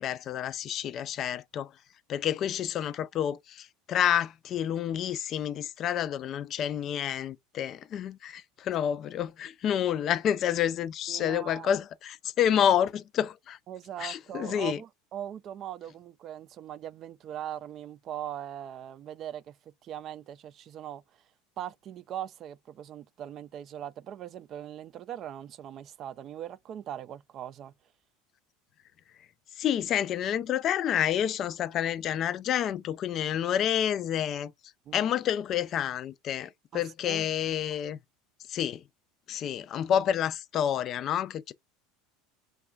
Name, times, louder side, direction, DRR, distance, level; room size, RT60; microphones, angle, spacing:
voice 1, 0.0-1.7 2.1-13.6 14.0-14.8 29.6-34.5 34.9-38.0 38.5-38.8 39.3-41.5, left 10 dB, 45° left, 0.3 m, -29 dB
voice 2, 11.1-11.7 13.7-19.6 19.8-21.0 21.6-27.7 34.9-35.1 36.7-37.3, right 10 dB, 45° right, 0.3 m, -40 dB
3.0 x 2.2 x 2.3 m
hypercardioid pair, 80°, 0 cm